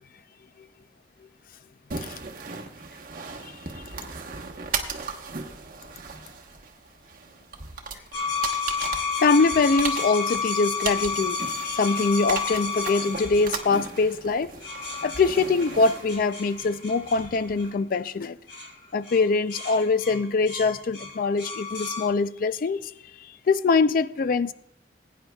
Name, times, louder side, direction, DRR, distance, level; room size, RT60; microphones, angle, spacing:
sound 1, 1.9-17.7, right 5 dB, 50° right, 1.1 m, -37 dB
sound 2, 8.1-14.0 14.6-18.0 18.5-18.7 19.0-19.2 19.5-22.1, left 5 dB, 85° left, 3.1 m, -31 dB
voice 1, 9.2-14.5 15.0-18.4 18.9-22.9 23.5-24.5, left 4 dB, 50° left, 0.4 m, -23 dB
21.0 x 9.3 x 2.3 m
head